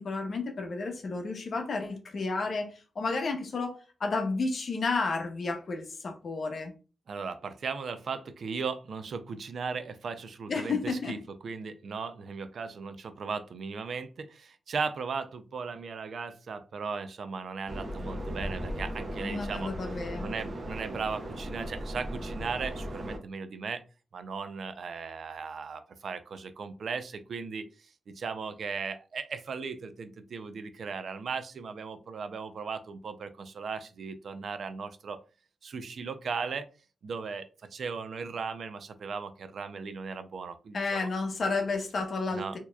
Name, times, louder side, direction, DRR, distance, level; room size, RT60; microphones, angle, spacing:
voice 1, 0.0-6.7 10.5-11.1 19.2-20.3 40.7-42.6, left 3 dB, 55° left, 0.8 m, -32 dB
voice 2, 7.1-19.7 20.2-23.8 24.1-35.2 35.6-36.7 37.0-37.5 37.7-41.1 42.3-42.6, right 5 dB, 65° right, 0.4 m, -37 dB
sound 1, 17.7-23.2, equal, 40° right, 0.9 m, -37 dB
4.5 x 2.9 x 2.2 m
wide cardioid pair, 130°, 0 cm